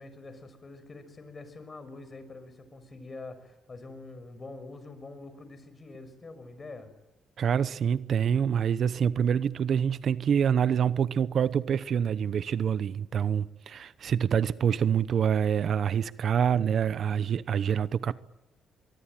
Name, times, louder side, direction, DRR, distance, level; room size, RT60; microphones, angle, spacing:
voice 1, 0.0-6.9, left 3 dB, 30° left, 6.1 m, -45 dB
voice 2, 7.4-18.2, right 8 dB, 60° right, 0.9 m, -26 dB
23.5 x 23.5 x 9.1 m
cardioid pair, 90°, 0 cm